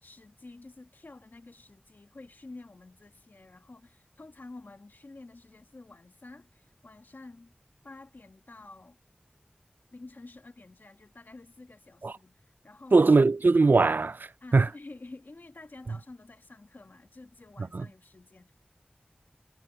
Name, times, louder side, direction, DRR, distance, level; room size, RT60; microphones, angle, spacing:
voice 1, 0.0-7.5 7.8-9.0 9.9-13.0 14.4-18.5, left 2 dB, 85° left, 1.8 m, -49 dB
voice 2, 12.9-14.7 17.7-17.9, right 3 dB, 85° right, 0.4 m, -21 dB
wide cardioid pair, 55°, 3 cm